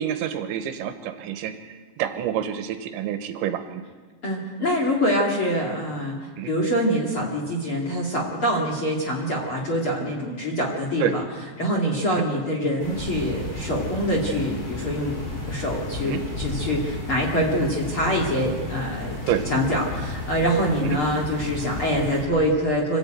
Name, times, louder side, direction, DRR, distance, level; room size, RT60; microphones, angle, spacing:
voice 1, 0.0-3.8 6.4-6.5 11.0-11.2 12.1-12.2 16.0-16.2 19.3-19.4 20.8-21.0, right 10 dB, 80° right, 8 dB, 3.2 m, -28 dB
voice 2, 4.2-11.2 11.6-15.2 15.5-19.2 19.5-23.0, equal, 40° left, -1 dB, 2.3 m, -25 dB
sound 1, 12.8-22.2, left 2 dB, 85° left, 9.1 m, -33 dB
25.5 x 13.5 x 8.9 m, 1.5 s
omnidirectional pair, 5.5 m